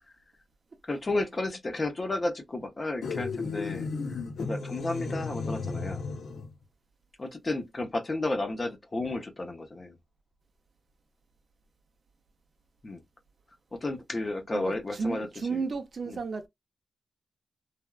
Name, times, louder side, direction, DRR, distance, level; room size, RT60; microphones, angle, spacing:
voice 1, 0.8-6.1 7.2-9.9 12.8-13.0 13.7-15.6 16.1-16.2, left 2 dB, 25° left, 0.6 m, -33 dB
sound 1, 3.0-6.5, left 4 dB, 85° left, 0.7 m, -34 dB
voice 2, 14.5-16.5, right 5 dB, 40° right, 0.6 m, -33 dB
3.3 x 2.3 x 2.2 m
wide cardioid pair, 180°, 0 cm